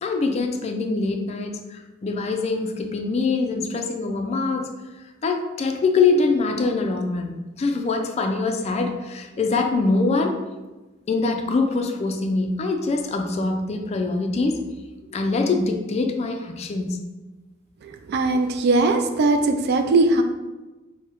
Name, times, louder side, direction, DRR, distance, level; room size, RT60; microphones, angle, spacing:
voice 1, 0.0-4.7 5.2-7.3 7.6-10.4 11.1-14.6 15.1-17.0, left 3 dB, 35° left, 4 dB, 0.3 m, -23 dB
voice 2, 17.8-20.2, right 2 dB, 55° right, 6 dB, 0.3 m, -20 dB
4.5 x 2.1 x 2.9 m, 1.2 s
head